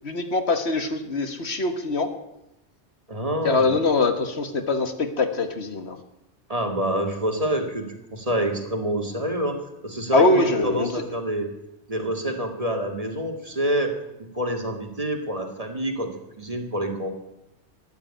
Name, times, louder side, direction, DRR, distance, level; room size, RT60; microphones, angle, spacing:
voice 1, 0.0-2.1 3.4-6.0 10.1-10.9, left 3 dB, 60° left, 7 dB, 1.7 m, -23 dB
voice 2, 3.1-3.7 6.5-11.5 11.9-13.9 14.2-17.1, right 1 dB, 30° right, 4 dB, 2.2 m, -27 dB
14.0 x 10.5 x 8.9 m, 0.89 s
omnidirectional pair, 1.2 m